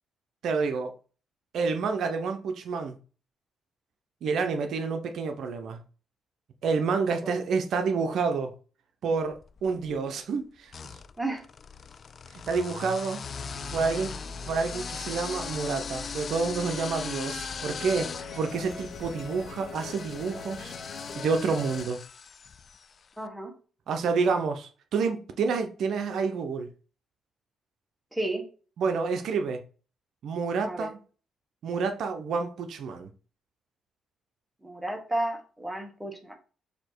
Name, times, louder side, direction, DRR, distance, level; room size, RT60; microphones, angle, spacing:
voice 1, 0.4-0.9 1.5-3.0 4.2-5.8 6.6-8.5 9.0-11.0 12.5-13.2 13.7-14.2 14.4-20.7 21.2-22.0 23.9-26.7 28.8-29.6 30.2-31.0 31.6-33.1, right 5 dB, 70° right, 0.6 m, -29 dB
sound 1, 9.3-10.0 10.7-23.0, left 6 dB, 45° left, 0.3 m, -40 dB
sound 2, 13.2-21.8, left 4 dB, 60° left, 0.8 m, -42 dB
voice 2, 23.2-23.5 28.1-28.5 30.6-30.9 34.6-36.3, right 1 dB, 5° right, 1.1 m, -32 dB
4.2 x 2.8 x 4.4 m
cardioid pair, 90°, 0 cm